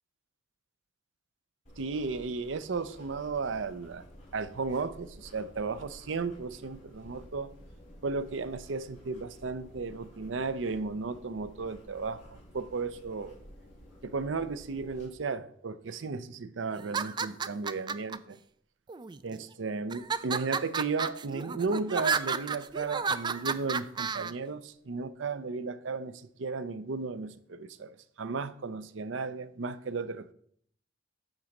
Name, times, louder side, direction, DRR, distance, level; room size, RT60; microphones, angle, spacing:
sound 1, 1.6-15.1, equal, 40° left, 4.1 m, -52 dB
voice 1, 1.8-4.0 4.3-7.5 8.0-13.4 14.0-18.4 19.2-30.3, right 4 dB, 85° right, 0.6 m, -34 dB
sound 2, 16.8-18.2 18.9-19.4 19.9-24.3, right 5 dB, 25° right, 0.3 m, -32 dB
9.0 x 3.9 x 6.4 m
head